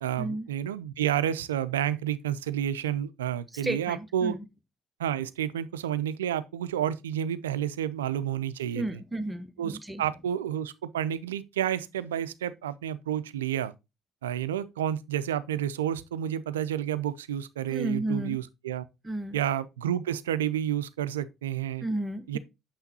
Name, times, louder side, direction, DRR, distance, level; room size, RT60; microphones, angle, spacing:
voice 1, 0.0-4.4 5.0-9.0 9.6-13.7 14.2-18.8 19.3-21.9 22.3-22.4, right 10 dB, 85° right, 0.3 m, -30 dB
voice 2, 3.6-4.4 8.8-10.0 17.7-18.4 19.0-19.4 21.8-22.4, right 1 dB, 15° right, 0.8 m, -32 dB
6.8 x 5.7 x 2.7 m
hypercardioid pair, 55°, 0 cm